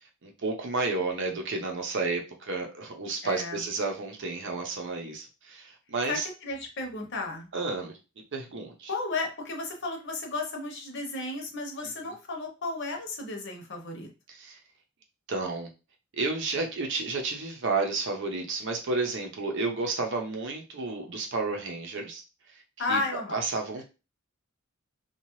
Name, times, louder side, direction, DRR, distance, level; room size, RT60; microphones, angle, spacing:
voice 1, 0.2-6.3 7.5-7.9 8.3-8.9 12.0-12.1 14.3-14.6 15.3-15.7 16.2-22.2 22.9-23.0 23.3-23.8, right 3 dB, 60° right, 3 dB, 0.7 m, -31 dB
voice 2, 3.2-3.7 6.1-7.5 8.9-14.1 22.8-23.4, left 3 dB, 55° left, 3 dB, 0.8 m, -33 dB
2.7 x 2.3 x 3.0 m, 0.30 s
head